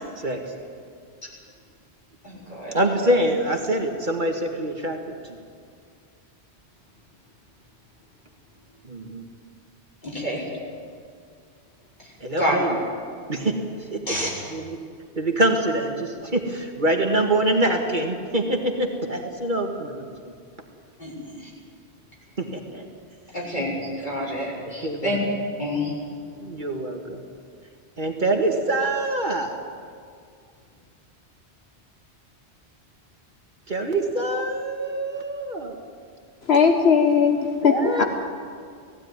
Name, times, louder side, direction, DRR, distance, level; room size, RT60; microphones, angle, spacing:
voice 1, 0.1-0.5 2.7-5.0 8.8-9.2 12.2-12.8 13.3-14.8 15.2-20.1 22.4-22.9 24.6-25.2 26.4-27.2 28.0-29.6 33.7-35.8 37.6-38.0, right 1 dB, 45° right, 2 dB, 2.0 m, -25 dB
voice 2, 2.2-2.7 10.0-10.4 12.4-12.5 14.0-14.3 21.0-21.1 23.3-25.2 25.6-25.9, equal, 45° left, -5 dB, 6.0 m, -28 dB
voice 3, 36.5-38.0, left 6 dB, 70° left, 4 dB, 1.4 m, -18 dB
18.0 x 16.0 x 9.7 m, 2.2 s
omnidirectional pair, 1.1 m